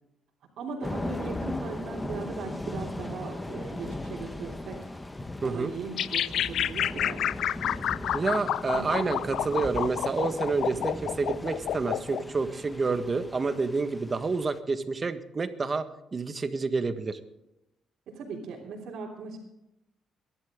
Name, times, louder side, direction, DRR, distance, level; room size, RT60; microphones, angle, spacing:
voice 1, 0.6-4.9 5.4-7.2 8.7-9.1 10.6-10.8 18.1-19.4, right 4 dB, 75° right, -6 dB, 3.3 m, -38 dB
Thunder / Rain, 0.8-14.6, left 2 dB, 15° left, 1.0 m, -38 dB
sound 1, 6.0-12.2, left 10 dB, 70° left, 0.5 m, -29 dB
voice 2, 8.1-17.2, right 4 dB, 35° right, 9 dB, 1.6 m, -29 dB
23.0 x 11.5 x 3.8 m, 0.88 s
cardioid pair, 90°, 0 cm